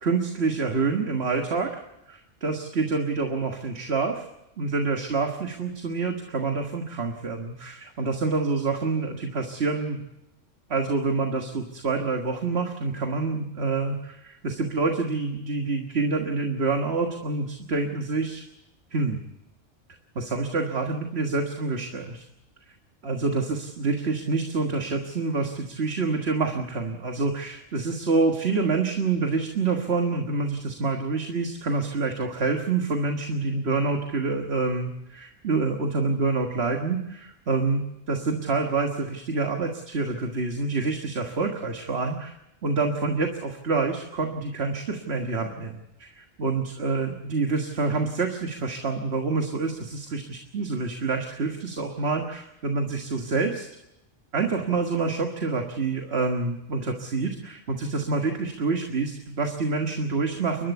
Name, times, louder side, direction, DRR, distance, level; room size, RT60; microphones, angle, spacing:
voice 1, 0.0-1.8 2.1-4.3 4.6-10.0 10.7-18.4 18.9-19.2 20.2-22.3 23.0-42.3 42.6-53.7 54.3-60.7, right 4 dB, 55° right, 3 dB, 1.8 m, -27 dB
29.5 x 12.5 x 8.3 m, 0.89 s
omnidirectional pair, 1.3 m